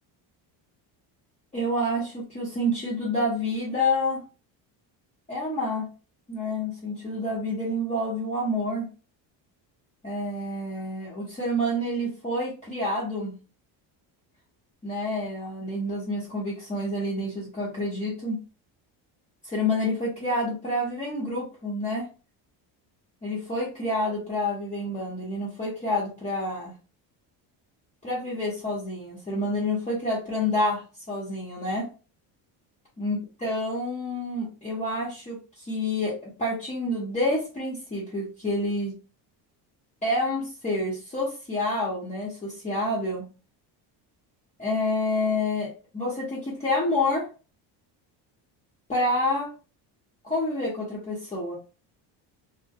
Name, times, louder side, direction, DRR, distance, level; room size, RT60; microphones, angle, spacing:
voice 1, 1.5-4.2 5.3-5.9 6.3-8.9 10.0-13.4 14.8-18.4 19.4-22.1 23.2-26.7 28.0-31.9 33.0-38.9 40.0-43.3 44.6-47.3 48.9-49.5 50.2-51.6, left 1 dB, 15° left, -6 dB, 0.7 m, -28 dB
2.2 x 2.1 x 2.7 m, 0.34 s
cardioid pair, 125°, 46 cm